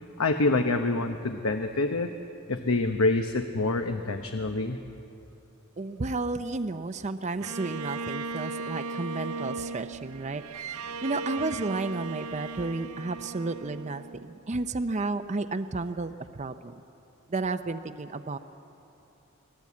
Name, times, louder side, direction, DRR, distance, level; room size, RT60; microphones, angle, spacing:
voice 1, 0.2-2.1 2.5-4.8, left 2 dB, 75° left, 6 dB, 1.0 m, -26 dB
voice 2, 5.8-16.8 17.3-18.4, right 3 dB, 35° right, 10 dB, 0.6 m, -32 dB
Bowed string instrument, 7.4-14.7, right 4 dB, 85° right, 0.7 m, -37 dB
24.5 x 18.0 x 8.5 m, 3.0 s
head